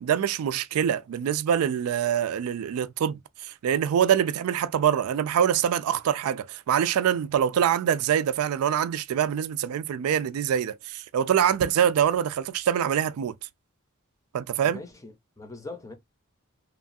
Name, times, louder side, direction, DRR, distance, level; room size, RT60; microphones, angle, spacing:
voice 1, 0.0-13.3 14.3-14.8, right 9 dB, 85° right, 0.3 m, -25 dB
voice 2, 14.6-15.9, left 3 dB, 15° left, 0.6 m, -41 dB
2.9 x 2.3 x 2.5 m
head